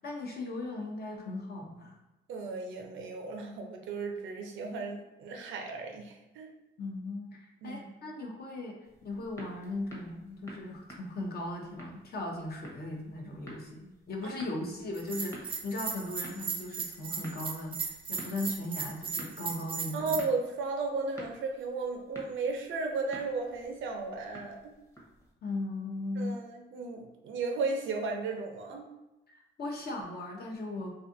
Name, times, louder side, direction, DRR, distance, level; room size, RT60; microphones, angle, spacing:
voice 1, 0.0-2.0 6.8-20.2 25.4-26.4 29.3-30.9, left 2 dB, 50° left, 1 dB, 0.7 m, -38 dB
voice 2, 2.3-6.5 7.6-7.8 14.2-14.3 19.9-24.7 26.2-28.9, right 4 dB, 75° right, 3 dB, 0.5 m, -35 dB
sound 1, 8.8-25.3, right 1 dB, 15° left, 0.8 m, -51 dB
Bell, 14.9-20.2, right 5 dB, 25° right, 0.4 m, -37 dB
2.5 x 2.4 x 2.5 m, 1.0 s
cardioid pair, 90°, 20 cm